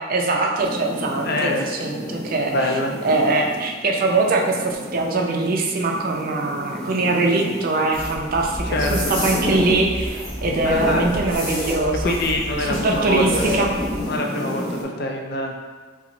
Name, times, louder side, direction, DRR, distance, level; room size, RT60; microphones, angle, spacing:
voice 1, 0.0-12.2 12.6-13.7, right 3 dB, 45° right, 1 dB, 0.4 m, -22 dB
sound 1, 0.6-11.7 11.9-14.8, left 1 dB, 5° left, 0.6 m, -31 dB
voice 2, 1.2-1.7 2.5-2.9 8.7-9.1 10.6-11.1 12.0-13.5 14.1-15.5, left 1 dB, 55° left, 1 dB, 0.5 m, -25 dB
sound 2, 7.9-14.0, equal, 20° left, 1.0 m, -29 dB
5.6 x 2.1 x 2.6 m, 1.5 s
head